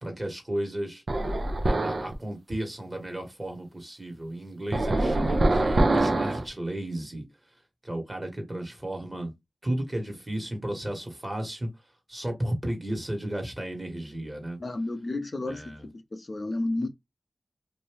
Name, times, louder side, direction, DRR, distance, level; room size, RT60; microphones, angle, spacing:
voice 1, 0.0-1.0 1.6-7.2 7.8-9.3 9.6-11.7 12.1-14.6 15.5-15.8, right 1 dB, 30° right, 1.4 m, -34 dB
sound 1, 1.1-2.1 4.7-6.5, right 2 dB, 65° right, 0.7 m, -24 dB
voice 2, 14.6-16.9, left 2 dB, 50° left, 0.5 m, -32 dB
2.7 x 2.6 x 3.3 m
wide cardioid pair, 55°, 0 cm